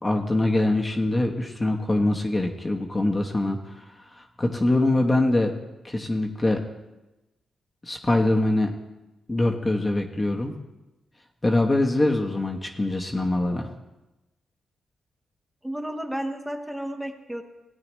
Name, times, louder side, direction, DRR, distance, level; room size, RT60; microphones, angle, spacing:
voice 1, 0.0-3.8 4.1-5.5 5.8-6.6 7.8-8.7 9.3-10.5 11.4-13.7, left 2 dB, 25° left, 1 dB, 1.1 m, -23 dB
voice 2, 15.6-17.4, right 1 dB, 10° right, 4 dB, 1.0 m, -32 dB
17.0 x 8.8 x 3.1 m, 1.0 s
cardioid pair, 75°, 0 cm